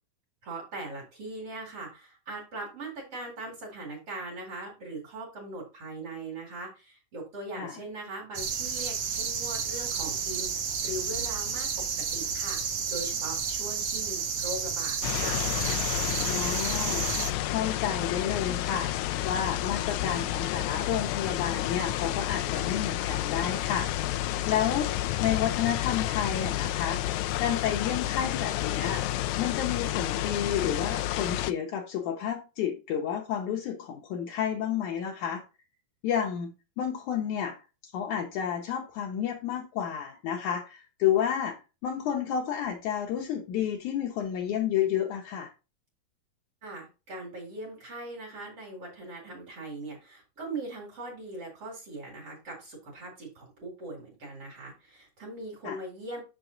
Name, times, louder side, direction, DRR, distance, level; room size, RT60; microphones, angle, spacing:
voice 1, 0.4-10.5 10.8-11.7 12.1-15.4 46.6-56.2, right 2 dB, 45° right, 2.9 m, -40 dB
sound 1, 8.3-17.3, right 6 dB, 60° right, 1.5 m, -31 dB
sound 2, 15.0-31.5, left 14 dB, 90° left, 1.6 m, -30 dB
voice 2, 16.2-18.9 19.2-23.9 24.1-24.9 25.2-27.0 27.4-29.0 29.4-35.4 36.0-37.6 37.8-45.5 55.6-55.8, left 9 dB, 70° left, 2.1 m, -31 dB
7.2 x 5.9 x 3.9 m
omnidirectional pair, 4.0 m